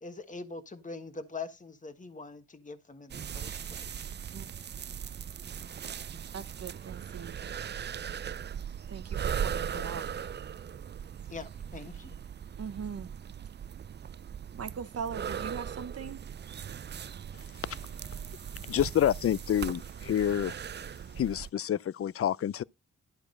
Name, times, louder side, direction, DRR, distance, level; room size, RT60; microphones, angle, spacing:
voice 1, 0.0-4.1 9.7-9.9 11.3-12.1, left 4 dB, 25° left, 1.4 m, -43 dB
sound 1, 3.1-21.5, right 8 dB, 35° right, 0.4 m, -39 dB
voice 2, 6.3-7.4 8.9-10.1 12.6-13.1 14.5-16.2, right 6 dB, 50° right, 1.0 m, -40 dB
voice 3, 18.7-20.5 21.2-22.6, left 10 dB, 45° left, 0.5 m, -28 dB
12.0 x 4.7 x 5.3 m
supercardioid pair, 50°, 31 cm